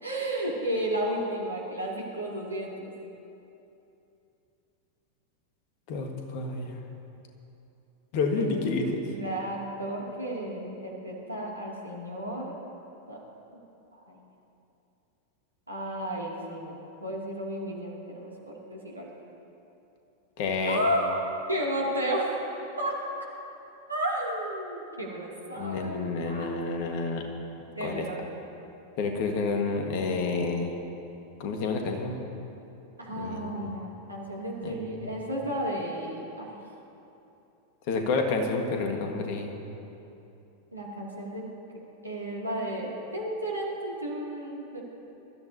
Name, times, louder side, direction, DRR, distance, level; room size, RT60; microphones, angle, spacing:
voice 1, 0.0-2.9 8.4-8.7 9.1-12.6 13.1-13.2 13.9-14.2 15.7-19.1 20.6-21.2 21.5-22.3 22.8-22.9 23.9-26.5 27.7-28.4 33.0-36.6 40.7-41.4 42.0-44.8, right 1 dB, 85° right, -4 dB, 2.7 m, -33 dB
voice 2, 5.9-6.8 8.1-9.0 20.4-20.8 25.6-27.2 27.8-28.1 29.0-30.7 31.4-32.2 33.2-33.7 34.6-35.1 37.9-39.6, left 4 dB, 45° left, 3 dB, 1.7 m, -29 dB
24.0 x 13.5 x 2.9 m, 2.9 s
figure-of-eight pair, 90°, 0 cm